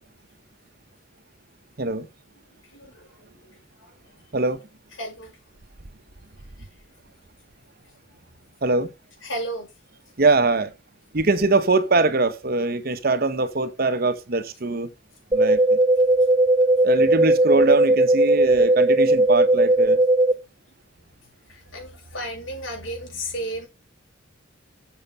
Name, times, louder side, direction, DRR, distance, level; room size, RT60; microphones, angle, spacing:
voice 1, 2.6-4.3 5.0-5.4 6.6-6.7 7.8-8.2 9.2-9.7 16.8-17.0 21.5-23.7, right 1 dB, 80° left, 6.2 m, -35 dB
voice 2, 10.2-10.7 11.1-14.9 15.3-15.8 16.8-20.0, right 3 dB, 50° right, 1.0 m, -22 dB
sound 1, 15.3-20.3, right 2 dB, 20° right, 1.7 m, -18 dB
7.5 x 7.2 x 5.4 m
head